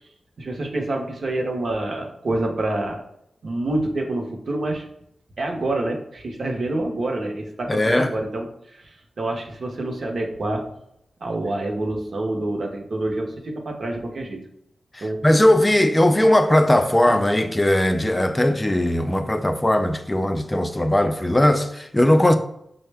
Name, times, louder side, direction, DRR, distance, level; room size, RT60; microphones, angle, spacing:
voice 1, 0.4-3.0 3.4-4.8 5.4-10.7 11.2-14.4 15.0-15.2, right 2 dB, 55° right, 0.7 m, -27 dB
voice 2, 7.7-8.1 14.9-22.3, left 1 dB, 15° left, 0.4 m, -19 dB
5.3 x 2.1 x 3.3 m
wide cardioid pair, 95°, 0 cm